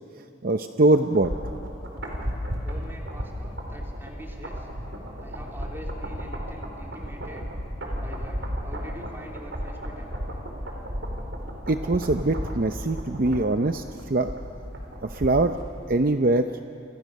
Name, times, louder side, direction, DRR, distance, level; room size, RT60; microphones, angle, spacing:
voice 1, 0.4-1.3 11.7-14.3 15.0-15.6 15.9-16.5, right 2 dB, 50° right, 8 dB, 0.7 m, -22 dB
sound 1, 0.9-15.6 15.9-16.0, equal, 70° right, 4.5 m, -34 dB
voice 2, 2.6-4.7 5.2-7.5 8.0-10.2, equal, 10° right, -1 dB, 3.4 m, -44 dB
29.0 x 26.5 x 6.5 m, 2.6 s
head